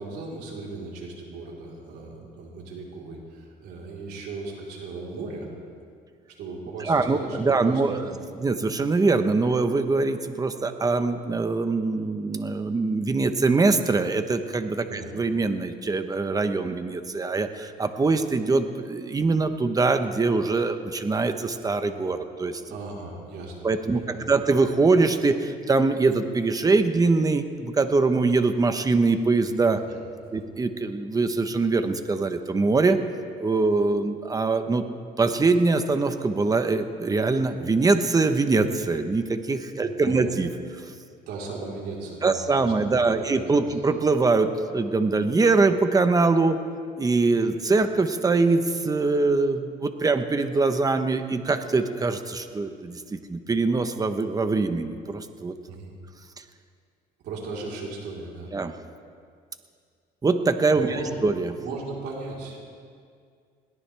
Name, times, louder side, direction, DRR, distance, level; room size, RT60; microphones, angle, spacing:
voice 1, 0.0-5.5 6.4-8.1 14.8-15.1 22.7-24.3 29.9-30.0 30.3-30.4 39.8-40.3 41.3-43.3 43.6-43.8 55.7-55.9 57.2-58.5 60.7-61.1 61.6-62.6, right 3 dB, 80° right, -3 dB, 4.1 m, -37 dB
voice 2, 6.8-8.0 8.4-22.6 23.6-24.0 24.3-29.8 30.3-33.0 33.4-34.8 35.2-40.5 42.2-46.6 47.0-55.5 58.5-58.7 60.2-61.5, right 3 dB, 20° right, 8 dB, 1.1 m, -23 dB
21.5 x 17.5 x 3.5 m, 2.2 s
cardioid pair, 110°, 17 cm